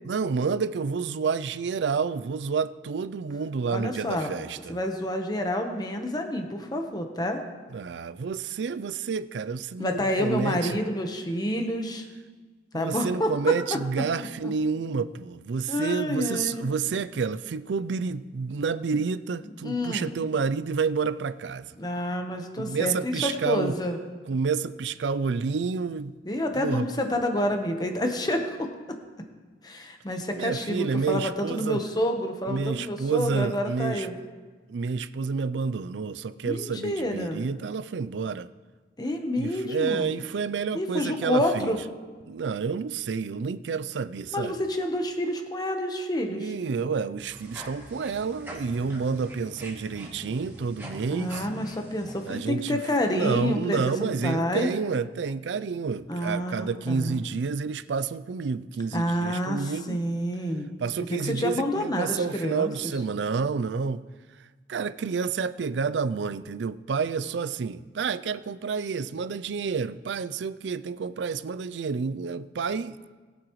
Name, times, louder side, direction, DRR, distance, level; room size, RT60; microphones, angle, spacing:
voice 1, 0.0-4.8 7.7-10.8 12.7-21.7 22.6-23.7 24.3-26.1 26.6-26.9 30.4-31.8 32.5-34.1 34.7-38.5 39.4-41.7 42.3-44.6 46.3-51.5 52.3-52.8 53.1-60.0 60.8-64.0 64.7-73.0, right 5 dB, 85° right, 0.4 m, -29 dB
voice 2, 3.7-4.3 4.7-7.4 9.8-12.0 12.7-13.3 14.4-14.5 15.7-16.6 19.6-20.1 21.8-24.0 26.2-28.7 29.6-34.1 36.4-37.4 39.0-40.1 40.7-41.8 44.3-46.5 51.1-54.7 56.1-57.2 58.9-60.7 61.1-62.7, left 1 dB, 25° left, 1.1 m, -28 dB
sound 1, 47.2-52.4, right 1 dB, 15° right, 2.3 m, -43 dB
21.5 x 7.7 x 3.1 m
head